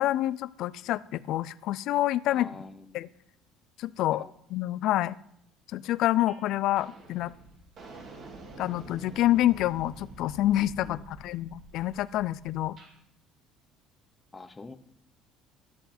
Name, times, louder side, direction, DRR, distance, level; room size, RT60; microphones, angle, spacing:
voice 1, 0.0-2.5 2.9-3.1 3.8-4.2 4.5-5.2 5.7-7.3 8.6-11.0 11.2-12.8, left 14 dB, 60° left, 19 dB, 0.4 m, -27 dB
voice 2, 2.3-3.1 4.1-4.3 10.8-11.5 14.3-14.8, left 3 dB, 15° left, 10 dB, 0.7 m, -46 dB
sound 1, 6.3-6.5 6.8-13.0, right 3 dB, 40° right, 1.9 m, -48 dB
12.5 x 7.9 x 4.3 m, 0.73 s
cardioid pair, 160°, 0 cm